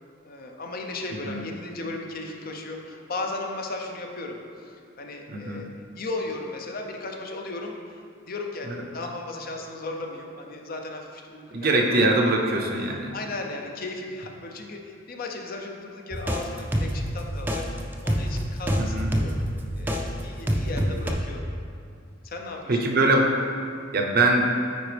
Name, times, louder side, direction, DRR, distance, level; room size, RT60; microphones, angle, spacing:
voice 1, 0.2-5.7 6.0-12.6 13.1-17.7 18.0-19.4 19.7-21.5 22.2-22.9, left 2 dB, 50° left, 2 dB, 0.6 m, -36 dB
voice 2, 5.3-5.6 8.7-8.8 11.5-13.1 18.8-19.1 22.7-23.4 23.9-24.5, right 2 dB, 50° right, 1 dB, 0.7 m, -22 dB
sound 1, 16.1-20.0 20.5-21.1, equal, 10° right, 0.5 m, -26 dB
9.4 x 4.0 x 3.4 m, 2.4 s
head